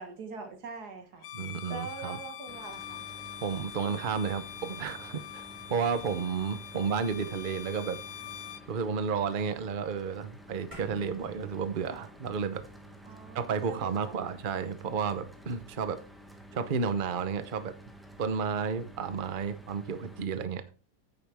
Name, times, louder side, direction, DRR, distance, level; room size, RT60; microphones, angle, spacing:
voice 1, 0.0-1.3 1.7-3.1 9.4-10.1 13.1-14.3, right 4 dB, 55° right, 1.9 m, -43 dB
Bowed string instrument, 1.2-8.7, left 10 dB, 75° left, 1.3 m, -44 dB
voice 2, 1.3-2.2 3.4-8.0 8.7-12.6 13.3-16.0 16.5-17.7 18.2-20.6, right 6 dB, 75° right, 0.4 m, -32 dB
Mechanical fan, 2.5-20.3, right 1 dB, ahead, 0.9 m, -51 dB
sound 1, 10.7-15.3, equal, 15° right, 2.7 m, -53 dB
9.3 x 9.3 x 3.5 m
omnidirectional pair, 2.2 m